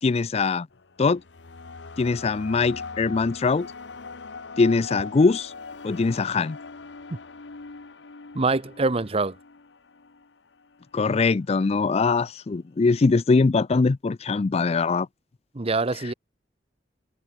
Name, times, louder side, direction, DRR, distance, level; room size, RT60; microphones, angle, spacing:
voice 1, 0.0-0.7 1.0-1.2 2.0-3.7 4.6-5.5 5.8-6.6 10.9-15.1, left 4 dB, 35° left, 0.4 m, -22 dB
sound 1, 0.7-10.9, left 4 dB, 90° left, 1.0 m, -41 dB
voice 2, 8.3-9.3 15.5-16.1, right 3 dB, 35° right, 0.9 m, -24 dB
head